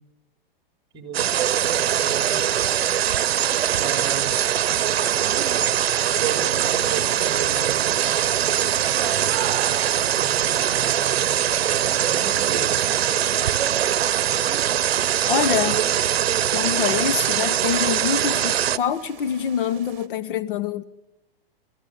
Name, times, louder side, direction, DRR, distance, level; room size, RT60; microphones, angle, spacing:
voice 1, 0.9-2.4 3.8-4.3 6.1-7.9 8.8-13.0, right 7 dB, 15° right, 3.8 m, -35 dB
sound 1, 1.1-18.8, right 11 dB, 85° right, 0.7 m, -22 dB
sound 2, 1.5-20.1, right 12 dB, 30° right, 1.9 m, -40 dB
voice 2, 15.3-15.9 16.5-20.8, left 8 dB, 60° left, 1.2 m, -25 dB
29.0 x 14.5 x 8.9 m
hypercardioid pair, 145°, 30 cm